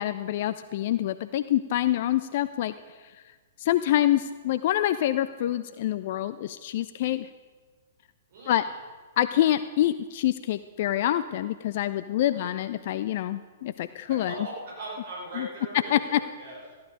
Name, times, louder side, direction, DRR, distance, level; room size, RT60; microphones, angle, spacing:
voice 1, 0.0-2.7 3.6-7.3 8.5-8.6 9.2-14.3 15.4-15.5 15.9-16.2, left 12 dB, 45° left, 13 dB, 0.4 m, -26 dB
voice 2, 8.3-8.8 12.3-12.5 14.1-16.7, right 1 dB, 50° right, -4 dB, 4.5 m, -40 dB
14.5 x 11.0 x 5.1 m, 1.5 s
figure-of-eight pair, 110°, 0 cm